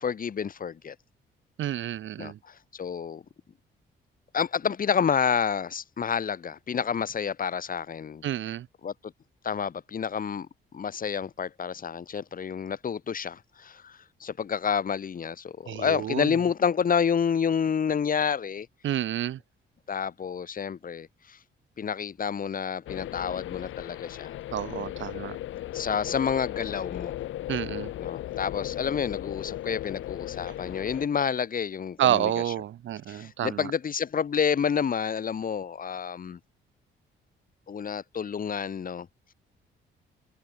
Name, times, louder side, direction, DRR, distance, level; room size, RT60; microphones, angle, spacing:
voice 1, 0.0-1.0 2.2-3.2 4.3-8.2 8.8-8.9 9.4-10.5 10.7-18.7 19.9-21.4 21.8-24.3 25.7-27.1 28.0-32.3 33.1-36.4 37.7-39.1, left 7 dB, 45° left, 1.9 m, -29 dB
voice 2, 1.6-2.4 8.2-8.7 15.7-16.4 18.8-19.4 24.5-25.4 27.5-27.9 30.5-30.6 32.0-33.7, right 11 dB, 75° right, 3.6 m, -29 dB
sound 1, 22.9-31.1, left 14 dB, 80° left, 1.4 m, -36 dB
cardioid pair, 90°, 20 cm